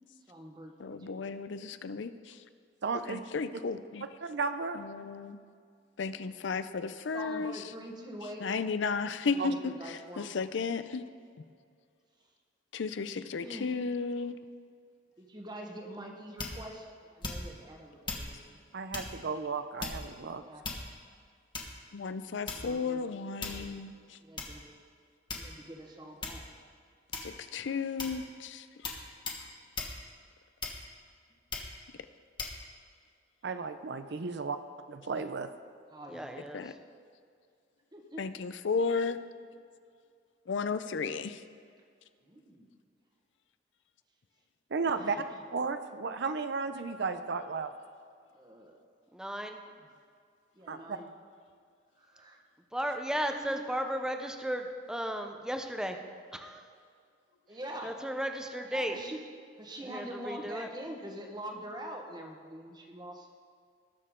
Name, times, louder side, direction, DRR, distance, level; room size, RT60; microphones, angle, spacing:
voice 1, 0.3-1.4 7.1-8.5 9.2-10.3 13.3-13.7 15.2-18.6 20.4-20.6 22.5-23.7 24.2-24.6 25.3-26.4 32.5-32.7 35.9-36.4 37.9-38.4 42.2-42.8 44.9-45.2 48.3-48.8 50.5-51.1 52.0-52.4 53.2-53.7 57.5-58.0 58.6-59.2 59.6-63.3, right 1 dB, 25° right, 2 dB, 1.3 m, -45 dB
voice 2, 0.8-2.4 2.9-4.1 4.7-5.4 6.0-7.6 8.4-11.1 12.7-14.4 21.9-24.2 27.2-28.9 36.5-36.7 38.2-39.2 40.5-41.4, left 4 dB, 70° left, 12 dB, 0.5 m, -34 dB
voice 3, 2.8-3.2 4.0-4.8 9.4-9.5 18.7-20.4 33.4-34.6 34.9-35.5 44.7-45.2 45.5-47.7 50.7-51.0, right 4 dB, 65° right, 9 dB, 0.6 m, -34 dB
sound 1, 16.4-16.7 17.2-17.6 18.1-18.3 18.9-19.2 19.8-20.2 20.6-21.1 21.5-21.9 22.5-22.8 23.4-23.7 24.4-24.5 25.3-25.7 26.2-26.5 27.1-27.5 28.0-28.2 28.8-29.0 29.3-29.4 29.8-30.0 30.6-31.0 31.5-31.8 32.4-32.6, left 3 dB, 25° left, 1.4 m, -38 dB
voice 4, 36.1-36.6 49.1-49.6 52.7-56.0 56.3-56.6 57.8-58.9 59.8-60.7, equal, 5° right, 5 dB, 0.7 m, -35 dB
19.5 x 6.7 x 3.7 m, 2.2 s
head